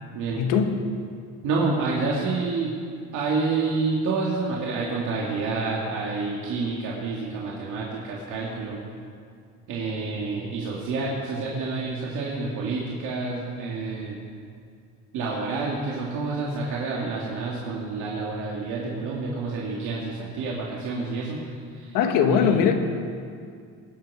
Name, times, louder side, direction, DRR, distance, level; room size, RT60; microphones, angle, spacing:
voice 1, 0.4-0.8 21.9-22.7, left 7 dB, 80° left, 5 dB, 1.5 m, -20 dB
voice 2, 1.4-2.7 3.1-8.8 9.7-14.1 15.1-21.9 22.3-22.6, right 3 dB, 70° right, -4 dB, 2.4 m, -28 dB
20.0 x 8.3 x 6.3 m, 2.2 s
cardioid pair, 120°, 32 cm